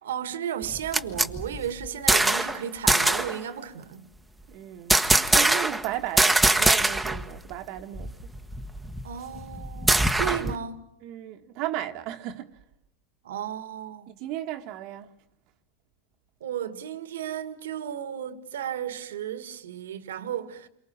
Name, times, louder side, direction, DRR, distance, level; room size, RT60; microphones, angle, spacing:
voice 1, 0.0-4.1 9.0-10.8 13.2-14.1 16.4-20.7, right 9 dB, 85° right, 1.9 m, -34 dB
sound 1, 0.6-2.6 2.9-3.4 4.9-5.9 6.2-7.2 7.5-7.6 8.0-10.6, right 2 dB, 5° right, 1.3 m, -22 dB
voice 2, 4.5-8.2 10.4-10.5 11.0-12.6 14.1-15.1, right 13 dB, 55° right, 1.4 m, -35 dB
29.0 x 23.5 x 7.3 m
hypercardioid pair, 110°, 0 cm